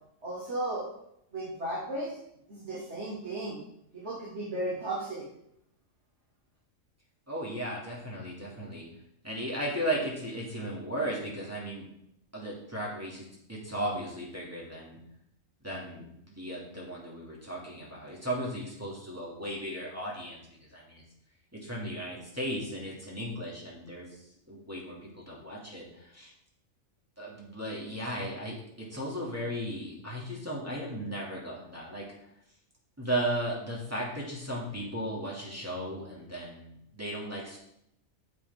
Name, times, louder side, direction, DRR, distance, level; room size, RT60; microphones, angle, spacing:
voice 1, 0.2-0.8 1.3-2.1 2.5-3.6 3.9-5.2, right 1 dB, 55° right, -9 dB, 2.6 m, -35 dB
voice 2, 7.3-8.8 9.2-11.9 12.3-15.0 15.6-21.0 21.5-26.3 27.2-32.3 33.0-37.6, right 1 dB, 10° right, -6 dB, 2.3 m, -36 dB
9.6 x 6.8 x 3.6 m, 0.76 s
omnidirectional pair, 1.4 m